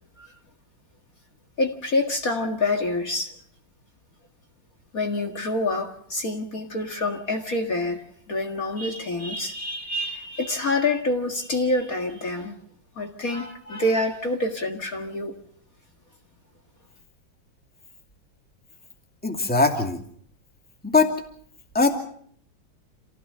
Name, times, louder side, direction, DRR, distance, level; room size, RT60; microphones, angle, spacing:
voice 1, 1.6-3.4 4.9-12.5 13.0-15.4, left 2 dB, 45° left, 3 dB, 2.2 m, -27 dB
voice 2, 19.2-20.0 20.8-21.1 21.7-22.0, left 3 dB, 5° left, 3 dB, 2.3 m, -20 dB
27.5 x 16.0 x 6.8 m, 0.64 s
omnidirectional pair, 2.2 m